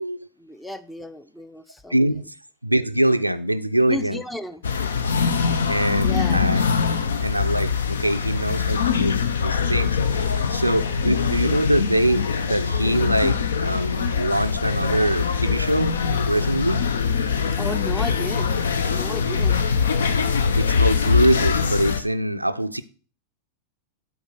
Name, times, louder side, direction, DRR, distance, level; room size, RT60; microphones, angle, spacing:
voice 1, 0.4-2.0 3.9-4.6 6.0-6.4 17.5-18.5 18.9-19.6, left 1 dB, 5° left, 0.6 m, -33 dB
voice 2, 1.9-2.2 2.6-4.2 5.7-6.6 7.2-10.2 10.5-16.0 16.3-16.8 20.6-22.8, right 1 dB, 90° right, 0.4 m, -23 dB
sound 1, 4.6-22.0, left 6 dB, 65° left, 0.6 m, -23 dB
8.1 x 4.3 x 5.9 m
figure-of-eight pair, 90°, 0 cm